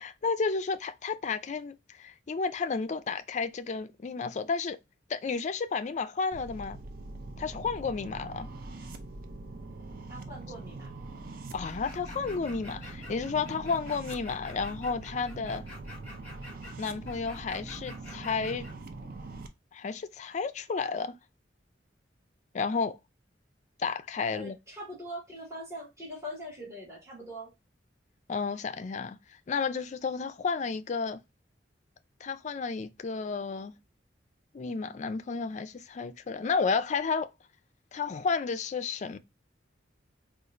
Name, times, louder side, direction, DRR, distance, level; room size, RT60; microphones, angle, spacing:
voice 1, 0.0-4.8 5.1-6.8 7.4-8.5 11.5-15.6 16.8-18.6 19.7-21.2 22.5-23.0 23.8-24.6 28.3-31.2 32.2-33.7 34.5-37.3 37.9-39.2, left 5 dB, 40° left, 0.4 m, -32 dB
sound 1, 6.3-19.5, right 2 dB, 55° right, 0.5 m, -43 dB
voice 2, 10.1-10.9 24.2-27.5, equal, 15° right, 1.5 m, -42 dB
sound 2, 11.6-18.7, left 2 dB, 10° left, 2.0 m, -48 dB
4.1 x 2.4 x 2.4 m
head